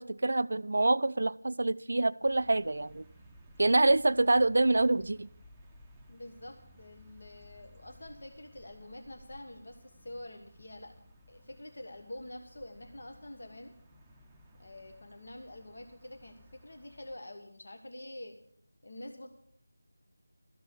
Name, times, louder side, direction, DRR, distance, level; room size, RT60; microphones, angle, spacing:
voice 1, 0.0-3.0 3.6-5.3, right 2 dB, 60° right, 0.4 m, -26 dB
sound 1, 2.2-17.1, equal, 5° right, 0.7 m, -58 dB
voice 2, 6.1-10.9 11.3-13.7 14.6-18.4 18.8-19.3, left 1 dB, 60° left, 1.5 m, -47 dB
13.5 x 5.9 x 8.4 m
figure-of-eight pair, 170°, 0 cm